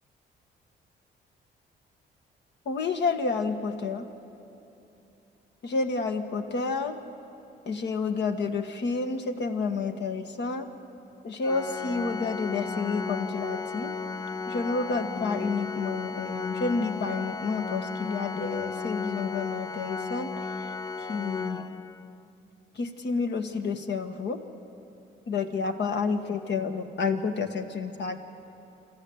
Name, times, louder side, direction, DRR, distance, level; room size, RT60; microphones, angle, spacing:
voice 1, 2.6-4.0 5.6-7.0 7.6-10.7 11.2-13.9 14.5-20.5 21.1-21.7 22.7-24.4 25.3-28.2, left 4 dB, 60° left, 6 dB, 1.5 m, -30 dB
Organ, 11.4-22.3, left 4 dB, 20° left, 0.5 m, -34 dB
27.5 x 13.5 x 8.0 m, 2.9 s
cardioid pair, 90°, 20 cm